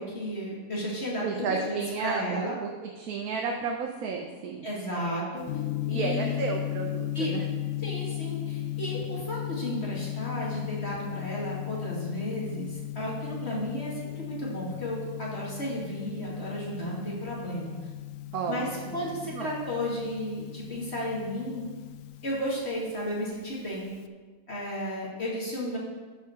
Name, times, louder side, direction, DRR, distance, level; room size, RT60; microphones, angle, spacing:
voice 1, 0.0-2.6 4.6-5.4 5.9-6.4 7.1-7.3 7.8-17.7 18.5-21.7 22.2-23.9 24.5-25.8, equal, 40° left, -5 dB, 2.6 m, -33 dB
voice 2, 1.2-4.7 5.9-7.4 18.3-19.5, right 5 dB, 70° right, 2 dB, 1.2 m, -33 dB
Gong, 5.4-24.0, left 15 dB, 70° left, 0.8 m, -36 dB
13.0 x 5.1 x 5.0 m, 1.4 s
omnidirectional pair, 1.7 m